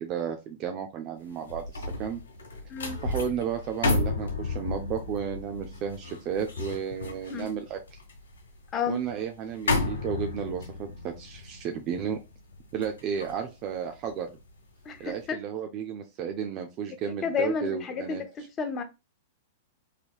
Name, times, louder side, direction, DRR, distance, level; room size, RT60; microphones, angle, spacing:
voice 1, 0.0-2.2 3.0-8.0 8.9-12.2 12.7-14.3 15.0-18.2, right 8 dB, 40° right, 0.4 m, -33 dB
sound 1, 1.3-14.6 15.0-15.3, left 3 dB, 80° left, 1.1 m, -33 dB
voice 2, 14.9-15.4 17.2-18.8, left 6 dB, 30° left, 0.6 m, -31 dB
3.2 x 2.8 x 2.3 m
hypercardioid pair, 110°, 0 cm